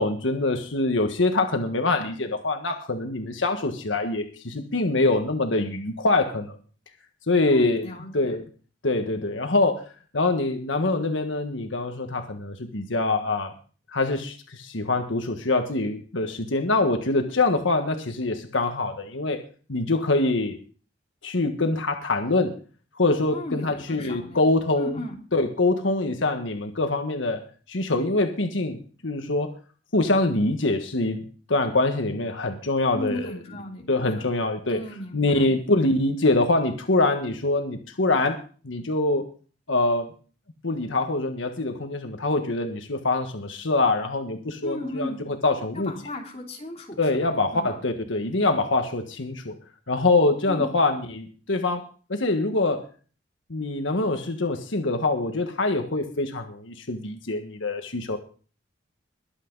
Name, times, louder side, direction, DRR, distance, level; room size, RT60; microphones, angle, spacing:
voice 1, 0.0-6.6 7.3-7.8 8.1-8.4 8.8-9.8 10.1-13.5 13.9-19.4 19.7-20.5 21.2-22.5 23.0-24.9 25.3-27.4 27.7-29.5 29.9-33.3 33.9-34.8 35.1-38.4 38.6-39.2 39.7-40.1 40.6-45.9 47.0-49.5 49.9-51.8 52.1-52.8 53.5-58.2, left 2 dB, 80° left, 5 dB, 1.5 m, -24 dB
voice 2, 7.5-8.4 23.3-24.4 24.8-25.2 32.9-34.3 34.7-35.5 44.6-45.2 45.7-47.7 50.5-50.7, left 1 dB, 35° left, 0 dB, 3.1 m, -35 dB
22.0 x 8.4 x 4.0 m, 0.39 s
head